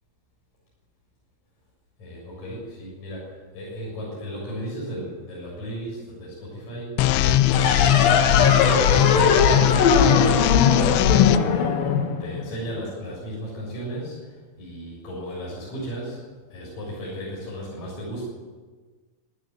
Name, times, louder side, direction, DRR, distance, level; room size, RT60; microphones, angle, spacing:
voice 1, 2.0-7.0 7.3-11.8 12.2-16.2 16.5-18.2, right 1 dB, 35° left, -5 dB, 8.3 m, -34 dB
sound 1, 7.0-11.4, left 12 dB, 80° left, 2.9 m, -19 dB
sound 2, 7.5-12.8, left 5 dB, 55° left, 3.1 m, -21 dB
26.5 x 14.0 x 9.5 m, 1.4 s
omnidirectional pair, 5.6 m